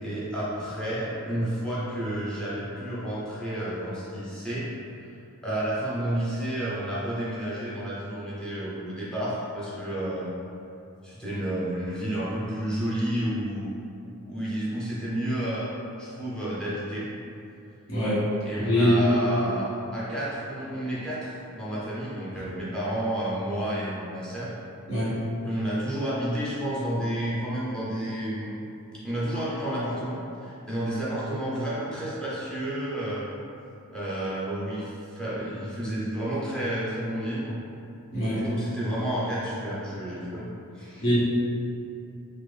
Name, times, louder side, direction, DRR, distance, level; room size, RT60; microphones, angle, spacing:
voice 1, 0.0-4.7 5.4-10.3 11.0-13.7 14.2-15.7 16.0-17.1 18.4-24.5 25.4-28.6 29.0-33.3 33.9-37.6 38.3-40.5 40.7-41.1, right 1 dB, 5° left, -9 dB, 0.5 m, -30 dB
voice 2, 17.9-18.2 18.6-19.0 22.3-22.4 24.9-25.1 38.1-38.4 41.0-41.2, equal, 55° left, -10 dB, 1.1 m, -23 dB
3.4 x 2.1 x 3.2 m, 2.7 s
head